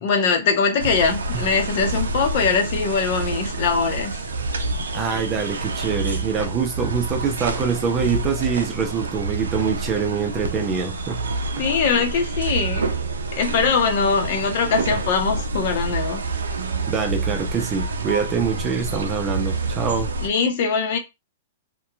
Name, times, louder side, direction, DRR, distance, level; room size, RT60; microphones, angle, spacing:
voice 1, 0.0-4.1 11.6-12.9 13.4-16.2 20.2-21.0, left 5 dB, 55° left, 0.7 m, -22 dB
sound 1, 0.8-20.3, right 3 dB, 90° right, 0.4 m, -28 dB
voice 2, 4.9-11.2 11.6-11.7 16.8-20.1, right 6 dB, 25° right, 0.7 m, -25 dB
2.8 x 2.3 x 2.3 m
hypercardioid pair, 125°, 0 cm